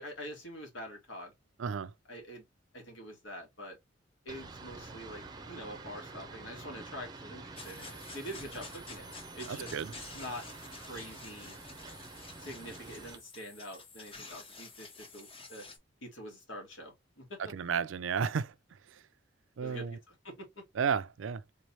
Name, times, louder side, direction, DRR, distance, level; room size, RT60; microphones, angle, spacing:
voice 1, 0.0-1.3 2.1-2.4 2.7-3.8 4.3-9.1 9.4-9.8 10.1-10.4 10.8-11.6 12.4-15.6 16.0-17.4 19.6-20.6, equal, 80° left, 1.8 m, -45 dB
voice 2, 1.6-1.9 9.5-9.9 17.5-18.5 19.6-20.0 20.8-21.4, right 6 dB, 80° right, 0.4 m, -32 dB
sound 1, 4.3-13.2, right 3 dB, 20° right, 0.6 m, -48 dB
sound 2, 7.6-15.8, left 4 dB, 30° left, 1.0 m, -50 dB
3.8 x 3.2 x 2.7 m
head